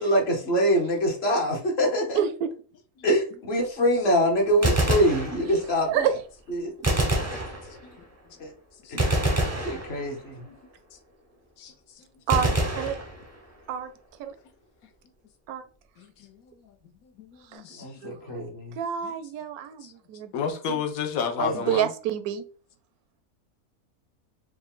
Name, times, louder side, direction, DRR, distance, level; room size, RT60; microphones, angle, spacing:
voice 1, 0.0-2.2 3.0-6.1 6.5-6.7 8.4-8.5 8.9-9.1 9.6-10.4 17.8-18.8 21.4-21.9, equal, 50° left, 1.1 m, -25 dB
voice 2, 2.1-2.5 5.9-6.1 9.1-9.6 12.3-13.0 13.7-13.9 14.2-14.3 15.5-15.6 17.5-17.6 18.0-18.5 18.8-20.3 20.7-20.8 21.5-22.4, right 9 dB, 85° right, 1.1 m, -28 dB
Gunshot gunfire, 4.5-5.8 6.8-8.1 9.0-10.4 12.3-13.6, right 1 dB, 20° right, 0.5 m, -26 dB
voice 3, 7.0-7.6 8.8-9.1 9.4-9.8 10.4-10.6 11.6-12.1 16.0-16.5 17.2-18.2 19.8-19.9 20.3-21.9, left 6 dB, 75° left, 1.1 m, -34 dB
4.6 x 2.2 x 3.6 m
omnidirectional pair, 1.5 m